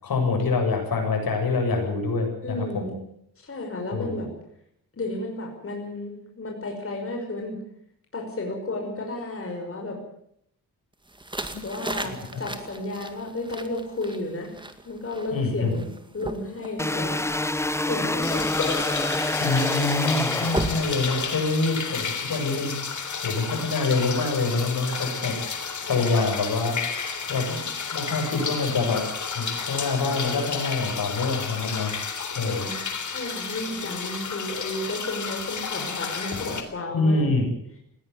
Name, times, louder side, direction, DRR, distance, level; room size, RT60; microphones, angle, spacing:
voice 1, 0.0-2.9 3.9-4.2 11.5-11.6 12.3-12.4 15.3-15.7 19.4-22.8 23.2-26.9 27.3-29.0 29.3-31.9 32.4-32.6 36.9-37.5, left 3 dB, 70° left, 3 dB, 7.7 m, -26 dB
voice 2, 2.4-3.0 3.4-4.3 4.9-7.6 8.1-10.0 11.6-14.6 14.8-15.9 16.1-17.3 17.9-18.5 25.8-26.2 32.3-32.8 33.1-37.3, left 2 dB, 35° left, 1 dB, 5.8 m, -33 dB
sound 1, 11.1-21.8, right 1 dB, 15° right, 2.2 m, -37 dB
sound 2, 16.8-21.3, left 1 dB, 5° left, 0.8 m, -27 dB
sound 3, 18.2-36.6, left 5 dB, 50° left, 3.5 m, -32 dB
19.5 x 17.0 x 9.7 m, 0.73 s
cardioid pair, 100°, 36 cm